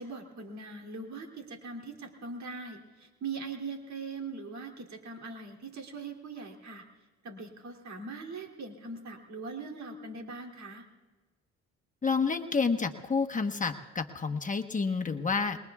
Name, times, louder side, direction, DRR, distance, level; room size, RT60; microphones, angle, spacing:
voice 1, 0.0-6.8 7.2-10.8, right 4 dB, 65° right, 2 dB, 3.0 m, -41 dB
voice 2, 12.0-15.6, left 4 dB, 25° left, 4 dB, 1.2 m, -29 dB
27.5 x 22.0 x 2.4 m, 1.3 s
cardioid pair, 90°, 30 cm